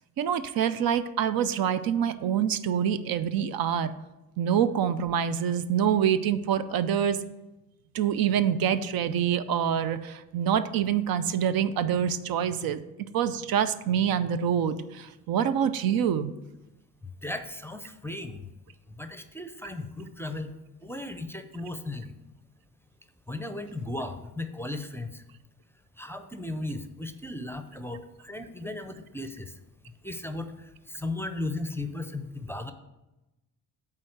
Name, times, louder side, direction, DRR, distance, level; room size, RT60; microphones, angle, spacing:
voice 1, 0.2-3.9 4.4-7.2 7.9-12.8 13.1-16.3, right 8 dB, 70° right, 12 dB, 0.6 m, -26 dB
voice 2, 17.2-18.5 18.9-20.5 20.8-22.1 23.3-25.2 26.0-29.5 30.0-32.7, left 2 dB, 5° left, 8 dB, 0.5 m, -36 dB
8.8 x 3.7 x 6.5 m, 1.0 s
cardioid pair, 95°, 37 cm